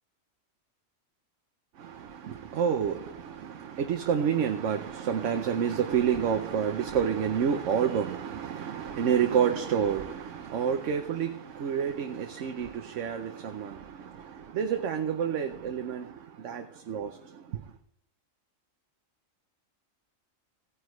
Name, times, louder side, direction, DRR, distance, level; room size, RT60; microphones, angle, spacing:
voice 1, 1.8-17.6, right 8 dB, 70° right, 1.1 m, -29 dB
16.5 x 9.5 x 3.1 m
omnidirectional pair, 1.4 m